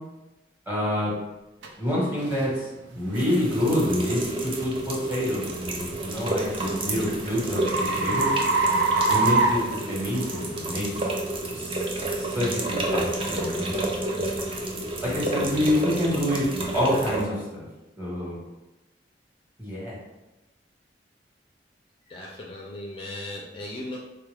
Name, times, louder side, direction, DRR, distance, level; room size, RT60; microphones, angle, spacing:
voice 1, 0.7-1.1 1.8-2.7 2.9-7.6 8.0-8.3 9.1-11.1 11.5-13.9 15.0-17.6 18.0-18.4 19.6-20.0, left 1 dB, 10° right, -6 dB, 1.1 m, -27 dB
sound 1, 1.6-1.7 2.3-2.5 3.1-3.3 5.9-10.4, right 3 dB, 80° right, 0.5 m, -25 dB
sound 2, 3.1-17.2, right 1 dB, 30° right, 0.4 m, -30 dB
voice 2, 22.1-24.0, left 1 dB, 30° left, -2 dB, 0.4 m, -37 dB
3.8 x 2.3 x 3.3 m, 1.0 s
head